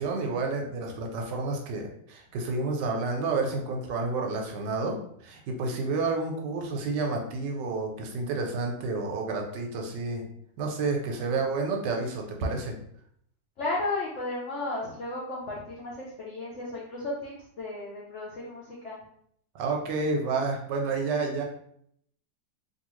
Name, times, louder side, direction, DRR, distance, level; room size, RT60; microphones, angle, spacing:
voice 1, 0.0-10.2 10.6-12.7 19.5-21.4, right 3 dB, 75° right, 1 dB, 1.2 m, -30 dB
voice 2, 13.6-19.0, left 2 dB, 85° left, -5 dB, 0.6 m, -34 dB
2.7 x 2.6 x 3.0 m, 0.69 s
omnidirectional pair, 2.0 m